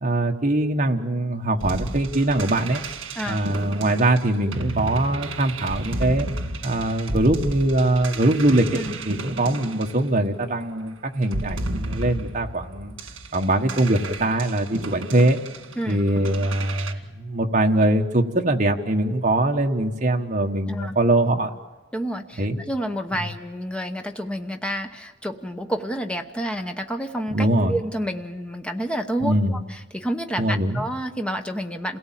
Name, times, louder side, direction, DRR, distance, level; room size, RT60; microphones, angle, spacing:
voice 1, 0.0-2.8 3.3-6.3 6.6-12.9 13.3-15.4 15.9-21.5 22.4-22.6 23.1-23.3 27.3-27.8 29.2-29.6 30.4-30.9, right 1 dB, 40° right, 2 dB, 1.4 m, -22 dB
sound 1, 1.6-10.6 11.2-16.9, right 2 dB, 80° right, 1.8 m, -33 dB
voice 2, 21.9-32.0, equal, 5° left, 5 dB, 0.9 m, -29 dB
28.0 x 17.5 x 7.6 m, 1.2 s
head